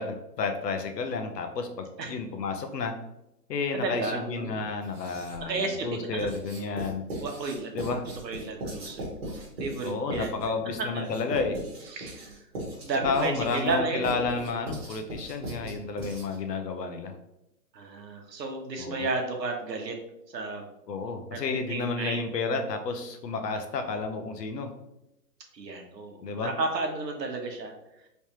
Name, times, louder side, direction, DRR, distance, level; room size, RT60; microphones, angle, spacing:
voice 1, 0.0-3.0 3.5-7.0 7.7-8.0 9.8-11.6 13.0-17.2 18.8-19.0 20.9-24.7 26.2-26.5, left 4 dB, 75° left, 6 dB, 0.8 m, -31 dB
voice 2, 3.7-4.6 5.4-6.3 7.2-7.7 8.2-9.1 9.6-10.3 10.9-11.1 11.9-12.4 12.8-14.5 17.7-20.0 20.3-20.6 21.3-21.4 21.7-22.2 25.5-27.7, right 3 dB, 85° right, 3 dB, 1.0 m, -32 dB
Writing, 4.8-5.5 6.2-16.5, right 1 dB, 40° right, 1.1 m, -39 dB
3.3 x 3.1 x 2.9 m, 0.88 s
hypercardioid pair, 175°, 49 cm